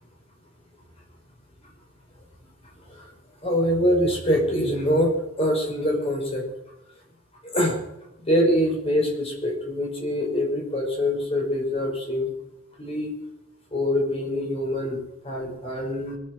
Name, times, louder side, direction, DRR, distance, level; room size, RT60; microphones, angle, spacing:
voice 1, 3.4-6.5 7.4-7.8 8.2-12.3 12.8-13.1 13.7-16.2, equal, 30° left, -1 dB, 5.1 m, -24 dB
23.5 x 8.0 x 6.0 m, 0.91 s
head